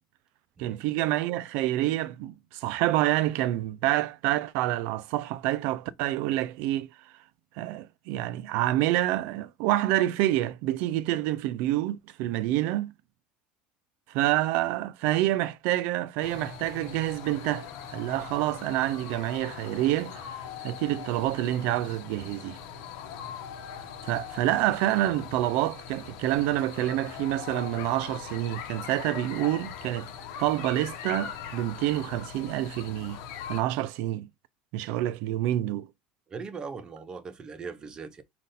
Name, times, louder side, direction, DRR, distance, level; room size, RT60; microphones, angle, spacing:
voice 1, 0.6-6.9 7.6-12.9 14.1-20.4 20.6-22.6 24.0-30.1 30.4-33.2 33.5-34.3 34.7-35.9, right 14 dB, 65° right, 0.4 m, -27 dB
sound 1, 16.2-33.6, left 8 dB, 70° left, 1.0 m, -41 dB
voice 2, 36.3-38.2, right 5 dB, 25° right, 0.7 m, -39 dB
5.1 x 2.5 x 4.1 m
cardioid pair, 140°, 3 cm